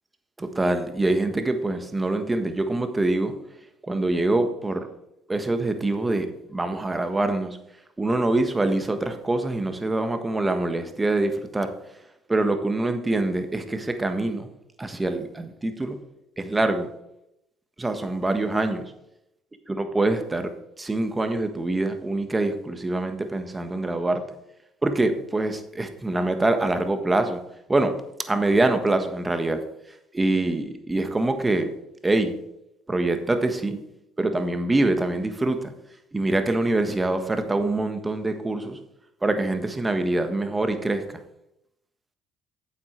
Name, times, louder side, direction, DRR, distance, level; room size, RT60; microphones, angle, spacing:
voice 1, 0.4-3.4 3.8-4.9 5.3-6.3 6.5-7.6 8.0-11.7 12.3-14.5 14.8-16.0 16.4-16.9 17.8-18.8 19.7-24.2 24.8-27.4 27.7-28.0 28.3-29.6 30.1-31.7 32.0-32.4 32.9-33.8 34.2-35.7 36.1-38.8 39.2-41.2, right 2 dB, 20° right, 7 dB, 1.4 m, -24 dB
8.9 x 7.4 x 4.6 m, 0.82 s
hypercardioid pair, 65°, 0 cm